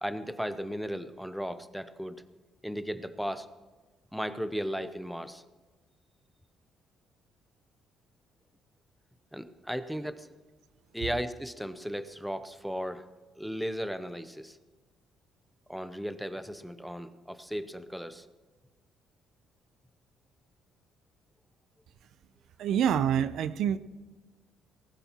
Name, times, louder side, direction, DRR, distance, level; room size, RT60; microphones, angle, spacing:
voice 1, 0.0-2.2 2.6-3.5 4.1-5.4 9.3-10.3 10.9-13.1 13.4-14.6 15.7-18.3, equal, ahead, 11 dB, 0.6 m, -36 dB
voice 2, 22.6-23.8, right 9 dB, 65° right, 14 dB, 0.5 m, -26 dB
19.5 x 18.5 x 3.0 m, 1.2 s
cardioid pair, 155°, 0 cm